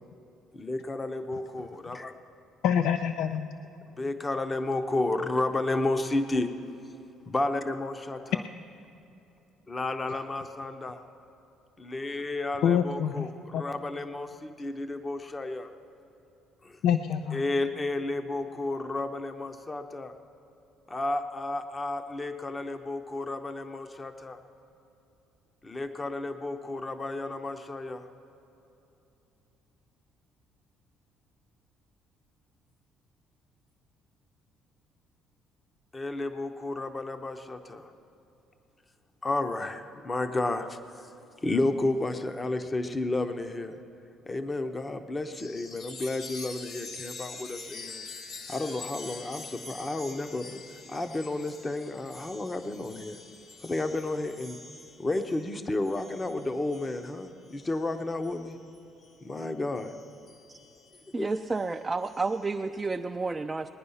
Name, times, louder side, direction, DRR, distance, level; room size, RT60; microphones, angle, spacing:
voice 1, 0.5-2.1 4.0-6.5 7.3-8.4 9.7-11.0 11.8-15.7 16.6-16.8 17.3-20.1 20.9-24.4 25.6-28.0 35.9-37.9 39.2-40.8 41.4-43.7 44.3-48.0 48.5-50.6 50.9-53.2 53.6-54.6 55.0-58.6 59.2-59.9 61.2-61.3, left 2 dB, 20° left, 7 dB, 0.7 m, -32 dB
voice 2, 2.6-3.5 12.6-13.6 16.8-17.4, left 8 dB, 70° left, 8 dB, 0.4 m, -26 dB
Chime, 45.3-59.3 59.8-62.6, left 3 dB, 55° left, 1.6 m, -46 dB
voice 3, 61.1-63.7, right 3 dB, 20° right, 4 dB, 0.4 m, -30 dB
19.5 x 9.7 x 5.6 m, 2.9 s
cardioid pair, 100°, 0 cm